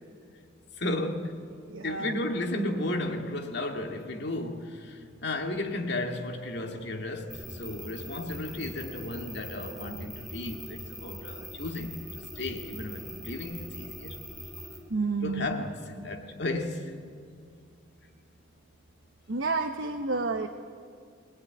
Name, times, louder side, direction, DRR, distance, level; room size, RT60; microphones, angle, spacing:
voice 1, 0.8-1.4 1.8-12.0 12.4-14.2 15.2-16.9, left 1 dB, 60° left, 2.2 m, -34 dB
voice 2, 1.7-2.1 14.9-15.6 19.3-20.5, right 3 dB, 85° right, 1.1 m, -30 dB
sound 1, 7.3-14.8, equal, ahead, 3.3 m, -42 dB
21.5 x 20.5 x 9.3 m
head